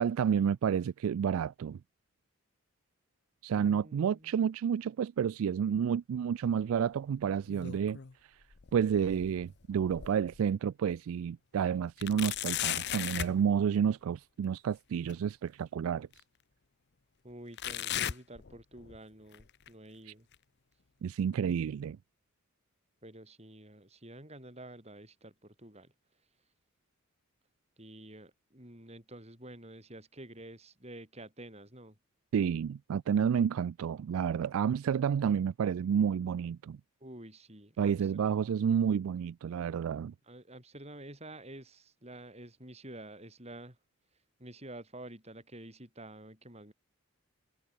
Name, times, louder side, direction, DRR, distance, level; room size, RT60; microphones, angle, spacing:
voice 1, 0.0-1.8 3.4-8.0 8.7-16.1 20.1-20.2 21.0-22.0 32.3-36.8 37.8-40.1, right 7 dB, 70° right, 0.3 m, -30 dB
voice 2, 3.5-4.3 17.2-20.3 23.0-25.9 27.8-32.0 37.0-38.4 40.2-43.8 44.4-46.7, right 1 dB, 30° right, 7.6 m, -49 dB
sound 1, 7.2-8.1 8.5-10.4 10.9-11.0 12.0-13.4 15.1-15.2 16.1-16.2 17.6-19.0 19.3-19.7 20.3-20.4 21.3-21.4, left 11 dB, 50° left, 0.7 m, -37 dB
head